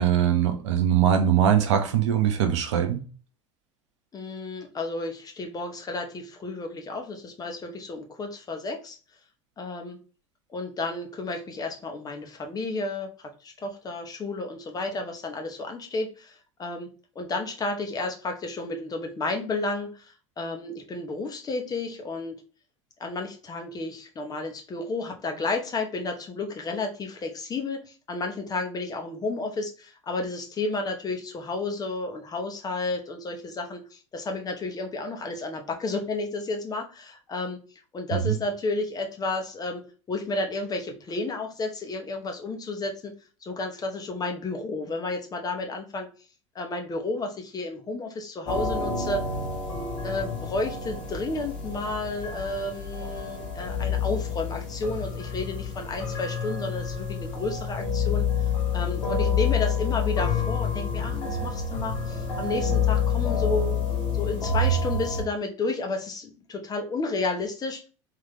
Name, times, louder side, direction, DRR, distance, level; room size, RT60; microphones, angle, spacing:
voice 1, 0.0-3.0 38.1-38.4, right 9 dB, 60° right, 0.9 m, -22 dB
voice 2, 4.1-9.0 9.6-10.0 10.5-13.1 13.4-16.9 17.1-22.3 23.0-37.6 37.9-43.1 43.4-46.1 46.5-49.2 50.0-58.5 58.7-63.8 64.1-67.8, left 3 dB, 25° left, 1.0 m, -32 dB
sound 1, 48.5-65.2, left 5 dB, 65° left, 1.7 m, -28 dB
3.8 x 3.2 x 3.4 m
figure-of-eight pair, 75°, 16 cm